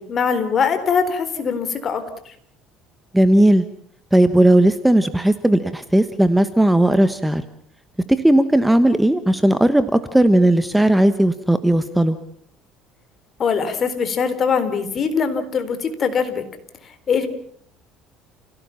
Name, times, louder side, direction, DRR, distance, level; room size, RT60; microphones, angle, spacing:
voice 1, 0.0-2.3 13.4-16.4 17.1-17.3, left 6 dB, 40° left, 10 dB, 3.9 m, -22 dB
voice 2, 3.1-3.6 4.1-7.4 8.2-12.2, right 1 dB, 5° right, 11 dB, 1.2 m, -16 dB
30.0 x 17.5 x 7.2 m, 0.64 s
cardioid pair, 115°, 0 cm